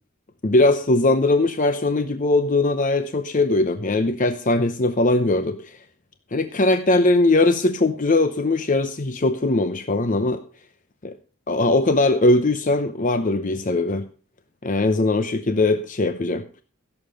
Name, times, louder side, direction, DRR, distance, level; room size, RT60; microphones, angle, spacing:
voice 1, 0.4-5.6 6.3-10.4 11.0-11.1 11.5-14.1 14.6-16.4, left 2 dB, 40° left, 9 dB, 0.7 m, -20 dB
16.0 x 7.3 x 5.1 m, 0.38 s
head